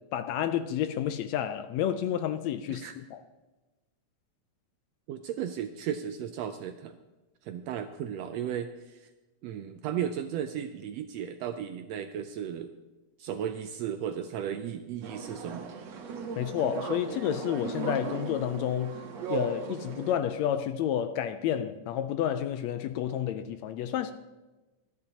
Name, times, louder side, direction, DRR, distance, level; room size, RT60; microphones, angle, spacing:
voice 1, 0.1-3.2 16.4-19.0 19.3-24.1, left 10 dB, 80° left, 1.7 m, -30 dB
voice 2, 5.1-7.0 7.4-9.1 9.4-12.7 13.2-15.7, right 9 dB, 80° right, 1.5 m, -35 dB
sound 1, 15.0-20.2, right 5 dB, 65° right, 2.3 m, -37 dB
25.0 x 9.8 x 2.9 m
omnidirectional pair, 3.4 m